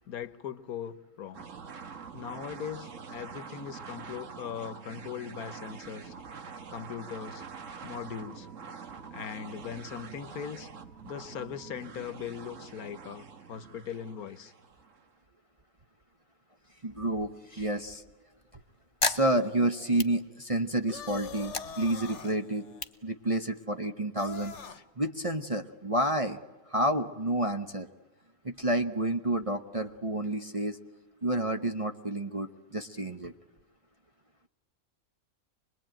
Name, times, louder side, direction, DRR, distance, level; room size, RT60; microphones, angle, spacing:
voice 1, 0.1-1.5 2.1-6.1 6.7-7.4 7.8-8.5 9.1-10.7 11.0-14.5, left 8 dB, 75° left, 13 dB, 1.5 m, -40 dB
sound 1, 1.3-15.1, right 6 dB, 55° right, 1.6 m, -45 dB
voice 2, 16.8-18.0 19.0-22.6 23.0-24.5 25.0-26.4 26.7-27.9 28.4-30.8 31.2-33.3, right 1 dB, 30° right, 4 dB, 0.8 m, -29 dB
sound 2, 18.3-20.8 21.2-23.9, left 3 dB, 25° left, 0.9 m, -36 dB
sound 3, 20.9-22.4 24.2-24.8, left 7 dB, 50° left, 1.4 m, -42 dB
26.0 x 21.5 x 9.0 m, 1.2 s
omnidirectional pair, 1.6 m